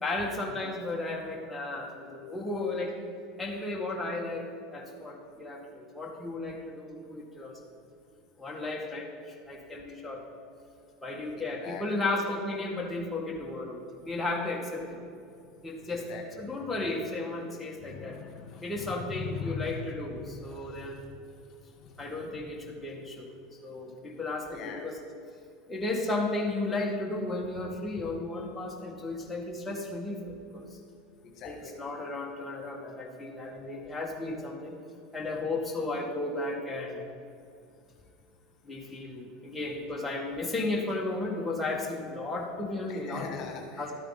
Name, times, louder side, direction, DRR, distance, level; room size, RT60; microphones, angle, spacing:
voice 1, 0.0-3.0 3.4-7.6 8.4-10.2 11.0-15.0 15.6-18.2 18.6-21.1 22.0-23.3 23.6-25.0 25.7-30.7 31.5-34.8 35.1-37.0 38.6-43.3 43.8-43.9, left 2 dB, 10° left, -2 dB, 1.9 m, -34 dB
voice 2, 11.3-11.8 14.0-14.2 15.6-16.3 17.8-19.8 20.3-20.9 21.5-22.4 24.5-24.8 31.2-31.7 42.9-43.9, left 6 dB, 50° left, 2 dB, 1.7 m, -42 dB
12.5 x 8.9 x 4.1 m, 2.5 s
hypercardioid pair, 90°, 0 cm